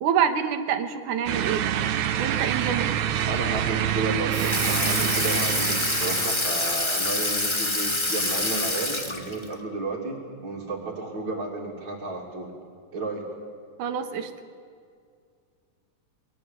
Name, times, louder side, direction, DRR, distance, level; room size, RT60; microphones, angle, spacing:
voice 1, 0.0-1.8 2.2-2.9 13.8-14.3, right 8 dB, 90° right, 9 dB, 2.9 m, -26 dB
sound 1, 1.3-6.3, right 10 dB, 70° right, 2.4 m, -26 dB
voice 2, 3.3-12.5 12.9-13.2, right 3 dB, 40° right, -5 dB, 3.5 m, -32 dB
Water tap faucet / Sink (filling or washing), 4.3-9.5, left 2 dB, 25° left, 0.6 m, -26 dB
23.0 x 22.5 x 8.5 m, 2.2 s
omnidirectional pair, 3.5 m